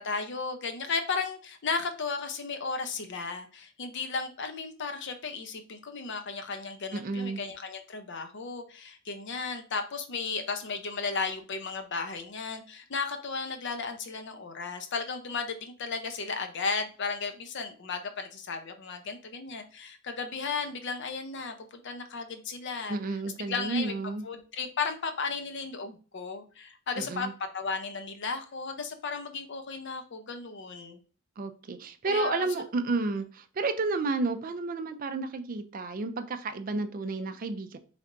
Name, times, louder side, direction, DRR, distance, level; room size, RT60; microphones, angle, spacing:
voice 1, 0.0-23.0 23.5-23.9 24.2-27.3 27.5-31.0 32.0-32.5, left 4 dB, 60° left, 7 dB, 0.6 m, -34 dB
voice 2, 6.9-7.4 22.9-24.2 27.0-27.3 31.4-37.8, right 3 dB, 45° right, 9 dB, 0.4 m, -31 dB
4.0 x 3.3 x 2.5 m, 0.38 s
head